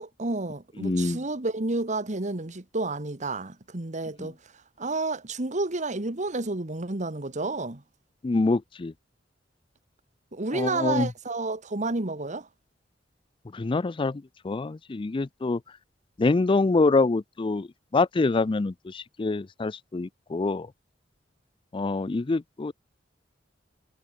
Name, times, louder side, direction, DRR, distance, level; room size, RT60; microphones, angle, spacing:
voice 1, 0.0-4.3 4.8-7.8 10.3-12.5, right 2 dB, 40° right, 1.6 m, -30 dB
voice 2, 0.8-1.2 8.2-8.9 10.5-11.1 13.5-15.6 16.2-17.7 17.9-20.7 21.7-22.7, left 3 dB, 30° left, 0.4 m, -25 dB
head